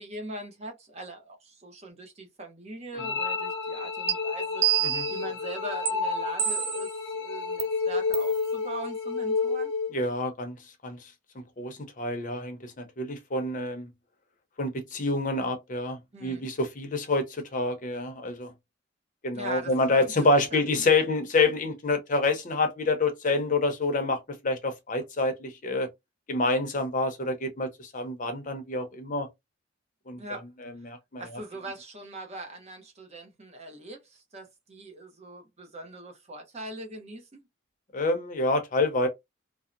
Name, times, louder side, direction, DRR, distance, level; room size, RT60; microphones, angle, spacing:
voice 1, 0.0-9.7 16.1-16.5 19.3-21.0 30.2-30.4 31.2-37.4, right 2 dB, 35° right, 0.7 m, -41 dB
sound 1, 3.0-10.0, left 4 dB, 75° left, 0.7 m, -30 dB
sound 2, 4.1-4.2 4.6-5.2 5.9-6.0 6.4-6.9 7.6-7.7 8.1-8.3, right 12 dB, 60° right, 0.3 m, -26 dB
voice 2, 9.9-10.6 10.8-11.1 11.6-13.9 14.6-18.5 19.2-25.9 26.3-29.3 30.1-31.3 37.9-39.1, left 2 dB, 40° left, 0.6 m, -27 dB
2.7 x 2.0 x 2.4 m
head